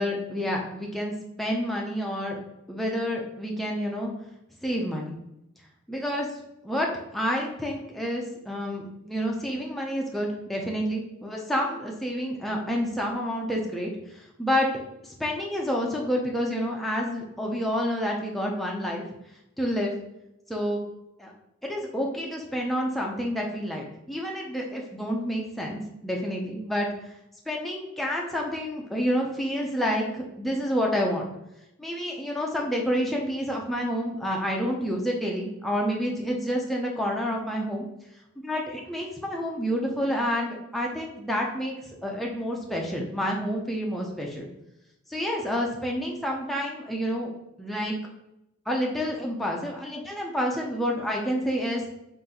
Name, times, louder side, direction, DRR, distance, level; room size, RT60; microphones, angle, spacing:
voice 1, 0.0-2.4 2.7-4.1 4.6-5.2 5.9-6.4 6.6-14.7 15.0-19.0 19.6-19.9 20.5-20.8 21.2-21.3 21.6-26.9 27.5-31.3 31.8-37.8 38.4-41.7 42.0-44.5 45.1-47.3 47.6-48.0 48.7-51.9, equal, ahead, -2 dB, 0.4 m, -29 dB
3.8 x 2.5 x 4.1 m, 0.87 s
head